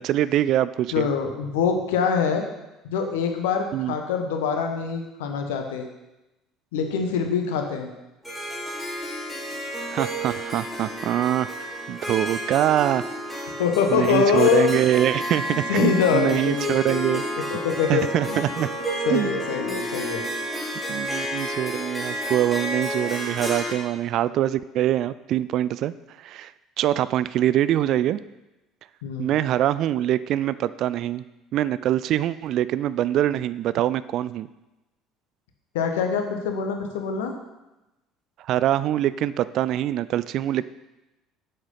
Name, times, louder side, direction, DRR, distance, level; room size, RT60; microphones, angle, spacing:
voice 1, 0.0-1.1 3.7-3.9 9.9-11.5 11.9-13.5 13.9-17.2 17.9-18.7 19.1-19.3 20.9-26.5 26.8-28.2 29.2-31.2 31.5-34.5 38.5-40.6, right 12 dB, 50° right, 16 dB, 0.3 m, -24 dB
voice 2, 0.9-2.4 2.8-5.8 6.7-7.9 13.6-14.7 15.5-17.2 17.5-18.4 19.0-20.2 29.0-29.3 35.7-37.3, left 6 dB, 65° left, 4 dB, 1.2 m, -24 dB
Harp, 8.2-23.7, right 1 dB, 5° left, 2.6 m, -31 dB
7.8 x 7.8 x 5.6 m, 0.99 s
figure-of-eight pair, 60°, 0 cm